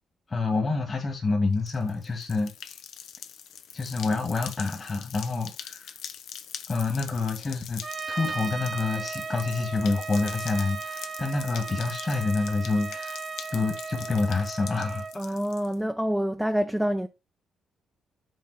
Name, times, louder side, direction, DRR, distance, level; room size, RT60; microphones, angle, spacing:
voice 1, 0.3-2.5 3.7-5.9 6.7-7.8 8.1-15.4, left 3 dB, 30° left, 1.9 m, -28 dB
sound 1, 1.5-15.7, left 8 dB, 75° left, 0.8 m, -43 dB
Trumpet, 7.8-15.2, right 4 dB, 35° right, 0.8 m, -36 dB
voice 2, 15.2-17.1, equal, ahead, 0.6 m, -27 dB
7.6 x 3.6 x 5.6 m
cardioid pair, 90°, 0 cm